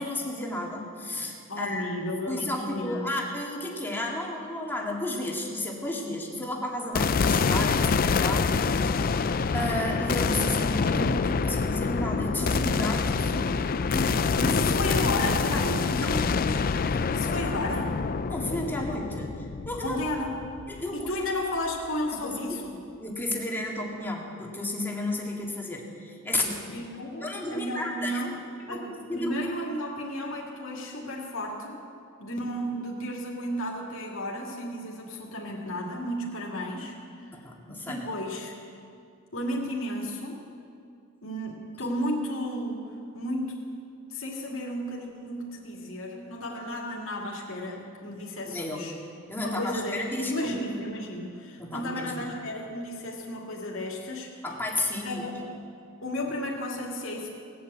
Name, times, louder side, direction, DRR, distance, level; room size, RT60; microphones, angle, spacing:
voice 1, 0.0-1.9 2.3-9.2 9.5-13.5 13.9-14.2 16.0-16.1 16.9-17.5 18.3-20.0 20.7-21.2 22.2-22.6 23.0-26.7 27.2-28.8 29.1-29.5 37.3-38.0 48.5-48.8 49.3-50.5 51.6-52.3 54.4-55.2, left 1 dB, 10° left, -1 dB, 1.9 m, -33 dB
voice 2, 1.5-3.1 14.4-16.8 17.1-18.0 19.8-20.3 20.7-22.6 26.7-28.4 28.7-31.8 32.2-37.0 37.9-38.5 39.3-40.4 41.2-42.8 43.1-43.6 44.1-48.9 49.4-54.4 55.0-55.5 56.0-57.4, left 1 dB, 65° left, -2 dB, 2.4 m, -33 dB
sound 1, 6.9-21.2, left 5 dB, 45° left, 0.4 m, -26 dB
19.0 x 8.6 x 8.1 m, 2.4 s
head